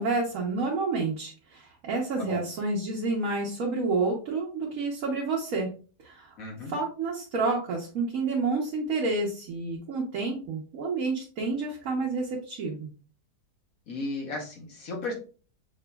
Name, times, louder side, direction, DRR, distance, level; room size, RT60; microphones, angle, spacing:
voice 1, 0.0-5.7 6.0-6.3 6.7-12.9, right 3 dB, 60° right, -2 dB, 1.2 m, -29 dB
voice 2, 6.4-6.8 13.9-15.1, left 2 dB, 60° left, 0 dB, 1.4 m, -35 dB
5.9 x 2.6 x 2.2 m, 0.37 s
omnidirectional pair, 1.7 m